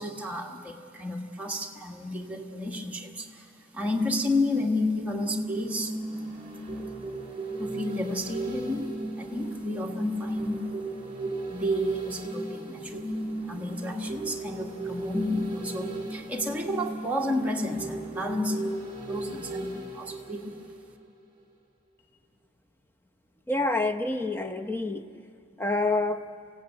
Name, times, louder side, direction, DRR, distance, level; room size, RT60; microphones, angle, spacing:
voice 1, 0.0-5.9 7.6-10.9 11.5-18.7 19.1-20.6, left 1 dB, 5° right, -1 dB, 1.6 m, -31 dB
sound 1, 4.8-21.1 21.4-21.5, right 2 dB, 25° right, 4.2 m, -36 dB
voice 2, 23.5-25.0 25.6-26.2, left 2 dB, 10° left, 5 dB, 0.8 m, -27 dB
27.0 x 16.5 x 8.7 m, 2.4 s
head